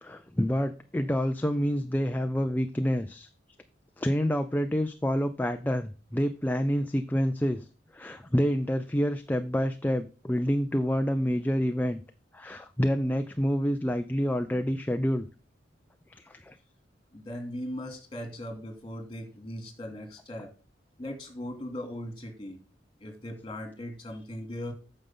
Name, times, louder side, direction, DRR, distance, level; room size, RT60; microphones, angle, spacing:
voice 1, 0.0-3.3 4.0-7.7 7.9-12.0 12.3-15.3 16.2-16.6, equal, 10° left, 7 dB, 0.4 m, -28 dB
voice 2, 17.1-20.5 21.0-22.6 23.0-24.7, left 1 dB, 25° left, 4 dB, 2.6 m, -39 dB
9.3 x 6.5 x 3.7 m, 0.33 s
head